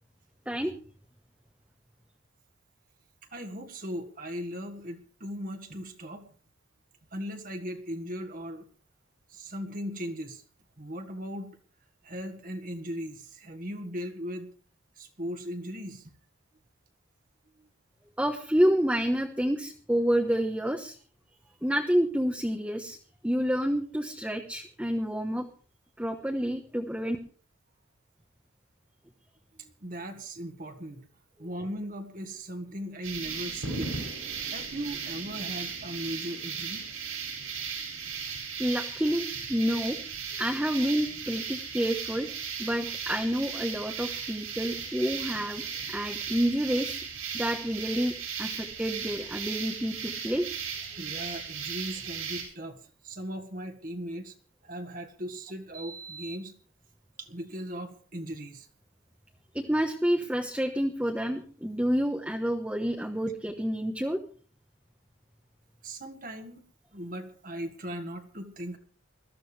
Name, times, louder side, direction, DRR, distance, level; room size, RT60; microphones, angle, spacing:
voice 1, 3.3-6.3 7.1-8.6 9.3-10.4 10.8-11.6 12.0-14.5 15.0-16.1 17.6-17.7 29.6-31.1 31.4-34.0 34.4-36.9 51.0-54.3 54.6-56.5 57.2-58.7 65.8-66.6 66.9-68.8, equal, 40° right, 5 dB, 1.6 m, -38 dB
voice 2, 18.2-20.9 21.6-23.0 23.2-25.5 26.0-27.2 38.6-40.0 40.4-42.3 42.6-46.9 47.3-48.1 48.4-50.4 59.5-64.2, equal, 5° right, 2 dB, 1.1 m, -28 dB
sound 1, 33.0-52.4, right 6 dB, 80° right, 7.4 m, -36 dB
21.5 x 14.0 x 3.4 m, 0.41 s
head